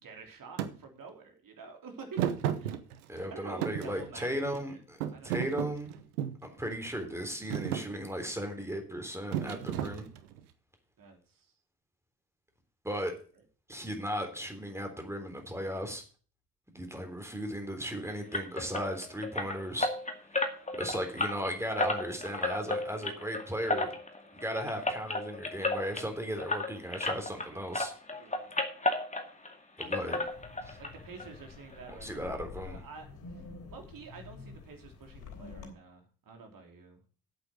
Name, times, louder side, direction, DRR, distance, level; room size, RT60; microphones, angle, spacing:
voice 1, 0.0-2.3 2.6-2.8 3.3-4.3 4.7-4.8 5.1-5.5 11.0-11.5 28.1-28.5 30.8-33.4 33.7-37.0, right 4 dB, 45° right, 4 dB, 3.5 m, -48 dB
Thump thud, 0.6-0.7 2.2-3.2 3.6-4.6 5.0-6.5 7.0-7.2 7.5-7.9 9.3-10.4, right 10 dB, 75° right, 1.1 m, -33 dB
voice 2, 3.1-5.0 5.2-5.9 6.4-10.1 12.8-13.1 13.7-16.0 16.7-19.9 20.3-20.4 20.7-23.9 24.3-27.9 29.8-30.2 30.6-30.8 31.9-32.8, equal, 5° right, 4 dB, 3.6 m, -36 dB
sound 1, 18.3-27.5 27.7-29.5 29.8-30.9 31.2-31.3 31.7-31.8 32.2-32.3, left 2 dB, 15° left, 2.2 m, -33 dB
Wind, 30.2-35.7, left 5 dB, 45° left, 3.4 m, -48 dB
8.8 x 8.1 x 6.5 m, 0.39 s
figure-of-eight pair, 50°, 46 cm